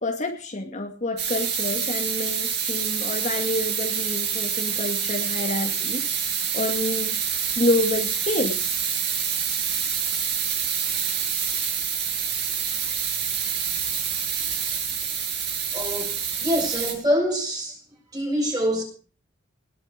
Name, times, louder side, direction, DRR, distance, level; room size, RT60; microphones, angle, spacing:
voice 1, 0.0-8.6, left 1 dB, 40° left, 2.3 m, -28 dB
sound 1, 1.2-16.9, right 7 dB, 55° right, 7.8 m, -27 dB
voice 2, 15.7-16.1 16.4-17.8 18.1-18.8, equal, 20° right, 8.0 m, -25 dB
20.0 x 11.5 x 5.3 m
head